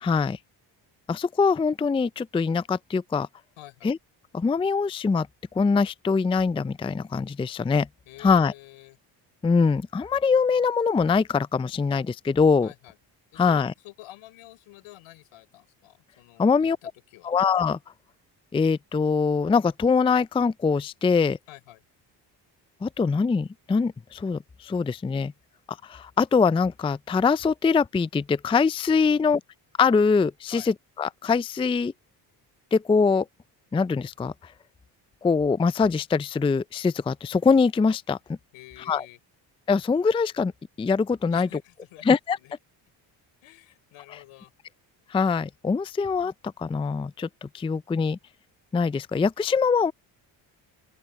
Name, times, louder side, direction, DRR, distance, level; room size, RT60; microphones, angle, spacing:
voice 1, 0.0-0.4 1.1-3.3 3.8-4.0 4.3-5.3 5.5-7.9 8.2-8.5 9.4-12.7 13.4-13.7 16.4-16.8 17.2-17.8 18.5-21.4 22.8-25.3 25.8-29.4 29.8-31.9 32.7-33.3 33.7-34.3 35.2-38.2 38.9-39.0 39.7-40.5 40.8-41.5 42.1-42.4 44.1-44.2 45.1-46.3 46.6-48.2 48.7-49.9, left 5 dB, 10° left, 0.4 m, -23 dB
voice 2, 3.6-3.9 8.1-9.0 12.6-13.0 13.3-17.3 21.5-21.8 29.1-29.4 30.5-30.7 38.5-39.2 41.3-42.6 43.4-44.5, left 17 dB, 80° left, 4.5 m, -48 dB
open air
supercardioid pair, 60°, 49 cm